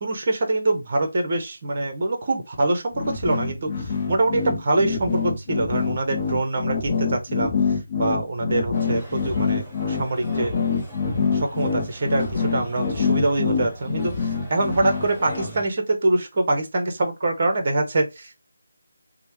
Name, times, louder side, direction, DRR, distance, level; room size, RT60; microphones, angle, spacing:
voice 1, 0.0-7.5 8.0-10.5 11.3-18.3, right 2 dB, 40° right, 0.8 m, -24 dB
sound 1, 2.9-15.5, left 5 dB, 35° left, 0.6 m, -25 dB
sound 2, 8.7-15.7, right 2 dB, ahead, 1.1 m, -42 dB
3.0 x 2.1 x 3.0 m
figure-of-eight pair, 160°, 0 cm